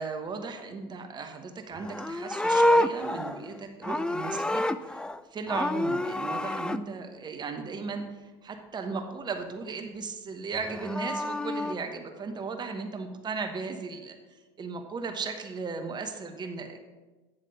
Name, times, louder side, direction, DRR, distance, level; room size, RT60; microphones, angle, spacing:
voice 1, 0.0-5.0 5.3-14.2 14.6-16.8, right 4 dB, 35° right, 5 dB, 1.1 m, -36 dB
Livestock farm animals working animals, 1.8-5.2 5.5-6.8 10.6-11.7, left 1 dB, 5° left, 0.3 m, -28 dB
9.4 x 3.5 x 6.8 m, 1.2 s
supercardioid pair, 85°, 13 cm